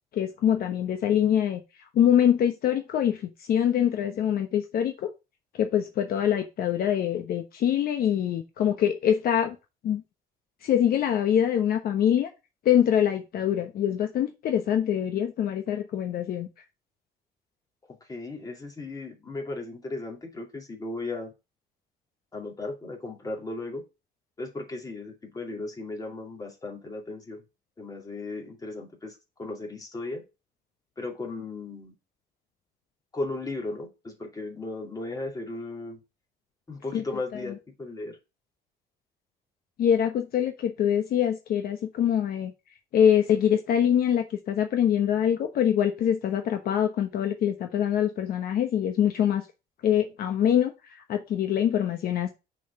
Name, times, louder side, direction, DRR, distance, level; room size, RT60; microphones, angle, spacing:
voice 1, 0.1-1.6 1.9-3.2 3.5-5.1 5.6-9.6 9.8-10.0 10.6-12.3 12.6-16.5 36.9-37.0 37.3-37.4 39.8-42.5 42.9-49.4 49.8-52.3, left 9 dB, 60° left, 6 dB, 1.0 m, -24 dB
voice 2, 18.1-21.3 22.3-23.8 24.4-27.4 27.8-30.2 31.0-31.9 33.1-36.0 36.7-38.2, left 2 dB, 20° left, 1 dB, 2.5 m, -36 dB
6.0 x 4.2 x 5.5 m, 0.26 s
cardioid pair, 110°, 17 cm